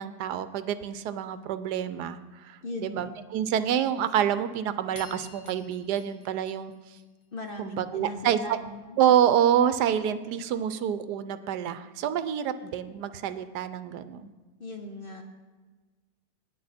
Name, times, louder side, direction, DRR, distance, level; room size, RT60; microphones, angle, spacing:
voice 1, 0.0-6.7 7.6-8.6 9.0-14.3, right 9 dB, 75° right, 12 dB, 1.2 m, -27 dB
voice 2, 2.6-3.1 7.3-9.0 14.6-15.2, left 2 dB, 40° left, 3 dB, 0.9 m, -38 dB
sound 1, 4.9-7.5, left 4 dB, 20° left, 1.1 m, -50 dB
19.0 x 7.4 x 4.2 m, 1.3 s
omnidirectional pair, 1.8 m